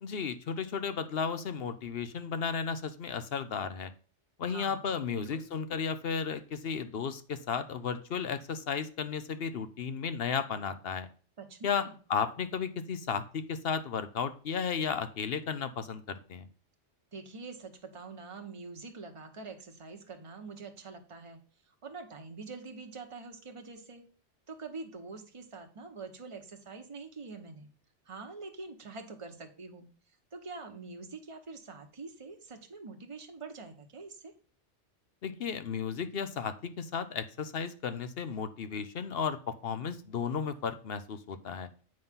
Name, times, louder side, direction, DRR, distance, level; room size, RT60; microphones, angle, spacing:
voice 1, 0.0-3.9 4.4-11.1 11.6-16.5 35.2-41.7, left 6 dB, 60° left, 11 dB, 0.9 m, -34 dB
voice 2, 4.5-4.8 5.1-5.5 11.4-11.9 17.1-21.4 21.8-24.0 24.5-27.7 28.1-29.9 30.3-34.3, right 4 dB, 30° right, 5 dB, 1.1 m, -45 dB
7.9 x 5.5 x 3.6 m, 0.41 s
omnidirectional pair, 1.2 m